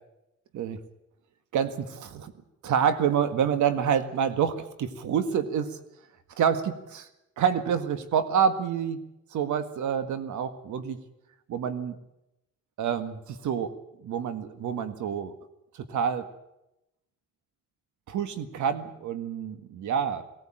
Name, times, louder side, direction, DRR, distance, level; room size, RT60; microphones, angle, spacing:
voice 1, 1.5-2.3 2.6-5.8 6.4-7.1 7.4-9.0 9.3-11.0 11.5-12.0 12.8-13.7 14.0-15.3 15.9-16.3 18.1-20.2, right 7 dB, 75° right, 10 dB, 1.8 m, -27 dB
18.5 x 17.5 x 8.9 m, 0.89 s
cardioid pair, 90°, 30 cm